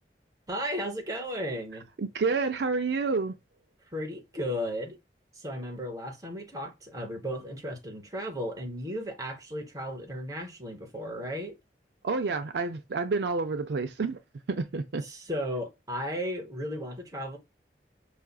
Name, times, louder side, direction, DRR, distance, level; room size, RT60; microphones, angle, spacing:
voice 1, 0.5-1.9 3.9-5.0 5.3-11.6 15.0-17.4, equal, 20° right, 1.0 m, -35 dB
voice 2, 2.0-3.3 12.0-14.2 14.5-15.0, right 4 dB, 65° right, 0.4 m, -29 dB
5.6 x 2.5 x 2.3 m
head